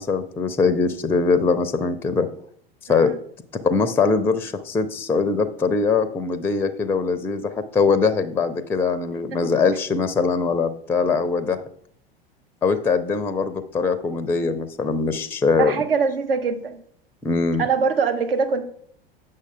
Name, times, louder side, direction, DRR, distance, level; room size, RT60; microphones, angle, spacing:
voice 1, 0.0-2.3 2.9-3.1 3.5-11.6 12.6-15.7 17.2-17.6, left 4 dB, 10° left, 12 dB, 0.4 m, -22 dB
voice 2, 15.6-16.8 17.6-18.7, right 5 dB, 70° right, 6 dB, 1.0 m, -23 dB
8.3 x 6.3 x 3.8 m, 0.64 s
figure-of-eight pair, 80°, 29 cm